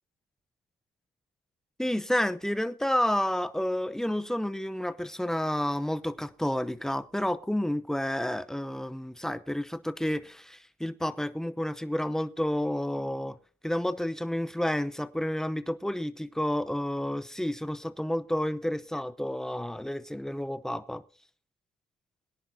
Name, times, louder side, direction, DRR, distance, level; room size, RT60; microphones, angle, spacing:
voice 1, 1.8-13.4 13.6-21.0, left 1 dB, ahead, 0.7 m, -30 dB
22.5 x 10.0 x 2.7 m
cardioid pair, 90°, 20 cm